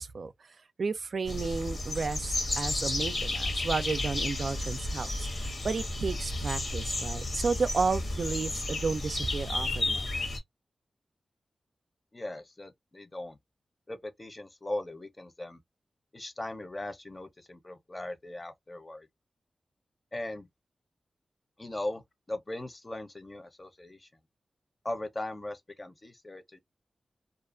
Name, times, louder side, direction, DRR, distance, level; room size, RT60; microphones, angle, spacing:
voice 1, 0.0-10.1, right 4 dB, 70° right, 0.3 m, -32 dB
sound 1, 1.3-10.4, left 2 dB, 65° left, 1.1 m, -32 dB
voice 2, 12.1-13.4 13.9-15.6 16.1-19.1 20.1-20.5 21.6-22.0 22.3-24.1 24.8-26.6, left 1 dB, 30° left, 0.7 m, -39 dB
2.4 x 2.3 x 2.4 m
cardioid pair, 55°, 0 cm